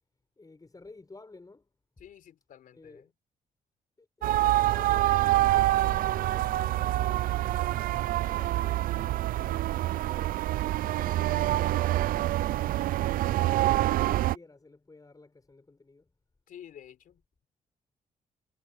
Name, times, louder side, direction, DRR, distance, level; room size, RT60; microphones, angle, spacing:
voice 1, 0.4-1.7 2.7-3.1 4.0-7.5 8.3-10.4 10.8-16.1, left 3 dB, 25° left, 6.5 m, -52 dB
voice 2, 2.0-3.1 16.5-17.5, left 10 dB, 75° left, 4.0 m, -51 dB
sound 1, 4.2-14.4, right 15 dB, 80° right, 0.5 m, -26 dB
cardioid pair, 70°, 14 cm